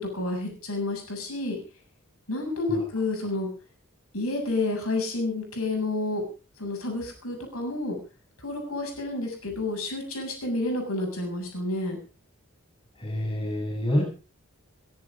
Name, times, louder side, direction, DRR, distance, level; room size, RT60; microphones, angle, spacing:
voice 1, 0.0-1.6 2.3-3.5 4.1-6.2 6.6-8.0 8.4-12.0, left 2 dB, 90° left, 2 dB, 7.3 m, -30 dB
voice 2, 13.0-14.0, left 1 dB, 25° left, 0 dB, 8.0 m, -27 dB
21.5 x 10.5 x 5.0 m, 0.36 s
head